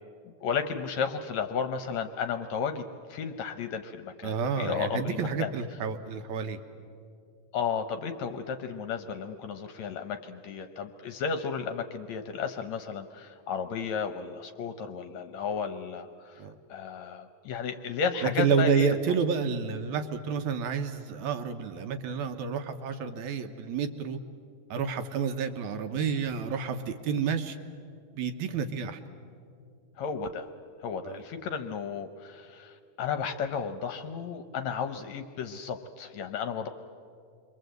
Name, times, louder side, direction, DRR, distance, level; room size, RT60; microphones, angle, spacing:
voice 1, 0.4-2.8 3.1-5.5 7.5-16.4 16.7-18.9 30.0-30.5 30.8-36.7, left 6 dB, 70° left, 8 dB, 1.8 m, -33 dB
voice 2, 4.2-6.6 16.4-16.6 18.2-24.2 24.7-27.6 28.1-29.0 31.0-31.2, right 6 dB, 70° right, 7 dB, 2.1 m, -29 dB
28.5 x 23.0 x 8.0 m, 2.4 s
omnidirectional pair, 3.8 m